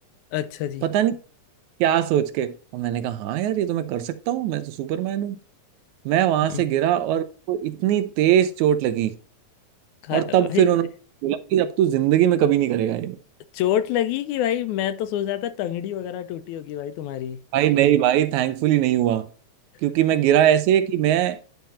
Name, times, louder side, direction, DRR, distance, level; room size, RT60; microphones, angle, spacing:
voice 1, 0.3-0.9 6.5-6.7 10.0-10.9 13.5-17.4, left 11 dB, 85° left, 2.0 m, -27 dB
voice 2, 1.8-5.4 6.1-9.1 10.1-10.9 11.2-13.2 17.5-19.3 19.8-21.4, right 11 dB, 80° right, 2.0 m, -21 dB
10.5 x 3.5 x 4.2 m
omnidirectional pair, 3.4 m